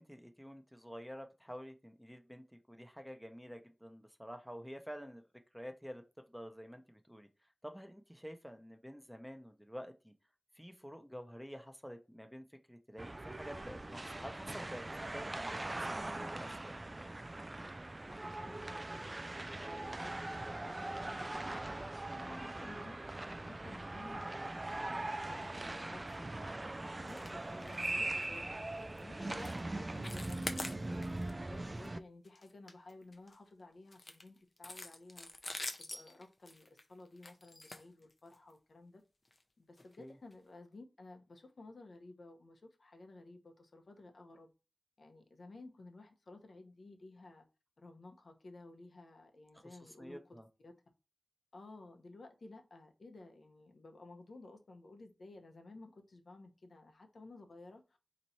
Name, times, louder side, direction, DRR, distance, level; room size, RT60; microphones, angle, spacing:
voice 1, 0.0-5.2 5.5-7.3 7.6-10.1 10.5-16.7 22.1-22.5 29.4-29.6 40.0-40.2 49.5-50.5, equal, ahead, 0.7 m, -49 dB
sound 1, 13.0-32.0, right 2 dB, 35° right, 0.3 m, -41 dB
voice 2, 18.0-24.4 24.7-24.9 25.3-26.3 27.0-28.6 29.0-35.3 35.8-39.0 39.6-44.5 45.0-47.4 47.8-50.7 51.5-58.0, left 2 dB, 75° left, 0.9 m, -55 dB
sound 2, 27.1-27.3 27.6-27.9 28.2-28.4 28.8-29.0 29.4-29.6 29.9-31.3 31.7-31.9 32.2-33.4 33.9-38.5 39.2-39.4 39.8-39.9 40.3-40.4, left 2 dB, 45° left, 0.7 m, -46 dB
4.1 x 3.1 x 4.1 m
wide cardioid pair, 70°, 0 cm